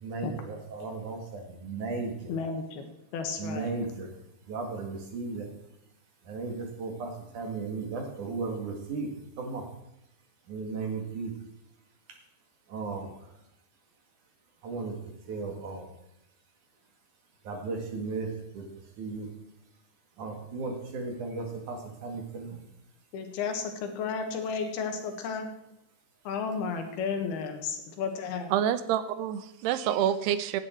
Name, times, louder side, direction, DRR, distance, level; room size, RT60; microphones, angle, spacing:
voice 1, 0.0-2.3 3.4-4.1 4.5-5.5 6.3-9.1 9.4-9.7 10.5-11.3 12.7-13.1 14.6-14.9 15.3-15.8 17.5-18.3 18.5-18.6 19.0-19.3 20.2-22.6, right 4 dB, 55° right, 3 dB, 3.2 m, -35 dB
voice 2, 2.3-2.8 3.1-3.7 23.1-25.5 26.3-28.5, left 5 dB, 75° left, 5 dB, 3.5 m, -33 dB
voice 3, 28.5-30.6, right 10 dB, 90° right, 13 dB, 2.9 m, -27 dB
17.5 x 11.0 x 4.5 m, 0.83 s
omnidirectional pair, 4.7 m